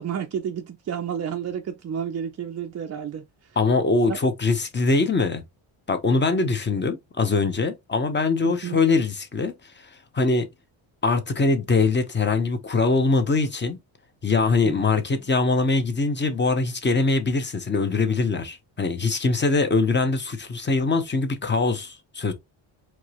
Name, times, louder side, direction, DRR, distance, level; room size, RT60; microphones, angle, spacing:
voice 1, 0.0-3.3 4.1-4.2 8.4-8.8 14.6-14.8, right 8 dB, 35° right, 0.4 m, -31 dB
voice 2, 3.6-5.4 5.9-10.5 11.0-13.8 14.2-22.3, left 3 dB, 20° left, 0.7 m, -23 dB
4.5 x 2.9 x 3.0 m
cardioid pair, 135°, 49 cm